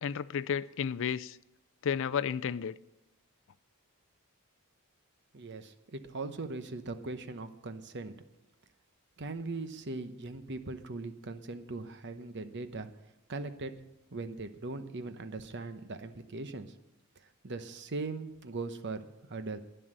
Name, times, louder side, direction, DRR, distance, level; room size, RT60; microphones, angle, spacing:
voice 1, 0.0-1.4 1.8-2.7, left 7 dB, 60° left, 0.4 m, -32 dB
voice 2, 5.3-8.2 9.2-12.9 13.3-13.7 14.1-16.7 17.4-19.6, right 3 dB, 50° right, 0.9 m, -40 dB
11.0 x 10.0 x 7.8 m
head